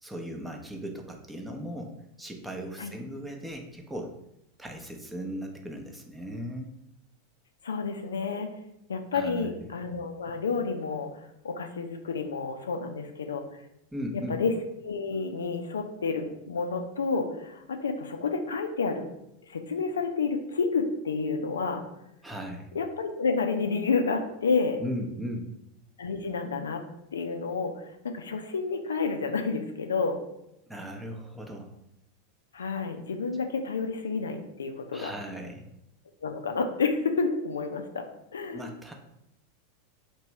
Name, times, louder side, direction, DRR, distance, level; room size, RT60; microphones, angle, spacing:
voice 1, 0.0-4.1 4.6-6.7 9.1-9.5 13.9-14.4 22.2-22.7 24.8-25.5 30.7-31.7 34.9-35.6 38.5-38.9, equal, 5° right, 2 dB, 0.7 m, -37 dB
voice 2, 7.6-8.5 8.9-11.1 11.4-13.6 14.3-14.5 14.8-19.1 19.5-21.8 22.7-24.8 26.0-26.8 27.1-30.2 32.5-35.1 36.2-38.1 38.3-38.7, left 4 dB, 75° left, 5 dB, 0.4 m, -30 dB
3.0 x 2.9 x 4.5 m, 0.84 s
figure-of-eight pair, 90°, 0 cm